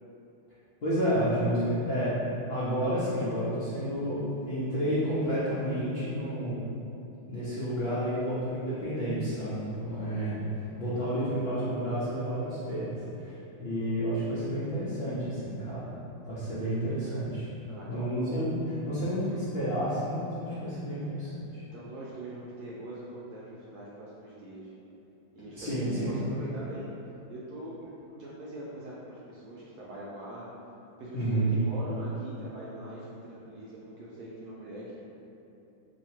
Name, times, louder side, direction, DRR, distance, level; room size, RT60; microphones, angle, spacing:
voice 1, 0.8-2.2 2.5-6.7 7.3-15.9 16.3-17.5 17.9-21.3 25.5-26.2 31.1-31.5, equal, 85° left, -11 dB, 0.5 m, -30 dB
voice 2, 17.7-18.2 21.6-24.7 25.3-26.9 27.3-27.7 28.0-30.4 31.0-34.9, right 1 dB, 70° right, -6 dB, 0.9 m, -42 dB
2.9 x 2.8 x 4.2 m, 2.8 s
omnidirectional pair, 2.1 m